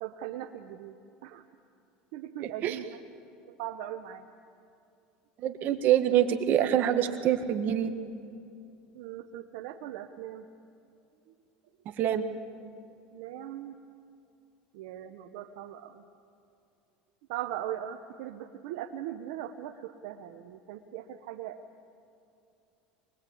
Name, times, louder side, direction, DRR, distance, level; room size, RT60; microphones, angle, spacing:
voice 1, 0.0-1.0 1.2-1.4 2.1-2.9 3.5-4.3 8.9-10.5 11.3-11.4 12.3-12.4 13.1-13.8 14.7-16.0 17.3-21.6, right 12 dB, 75° right, 4 dB, 1.0 m, -39 dB
voice 2, 5.4-7.9 11.8-12.2, right 10 dB, 50° right, 8 dB, 1.7 m, -25 dB
24.5 x 21.0 x 8.6 m, 2.6 s
supercardioid pair, 105°, 4 cm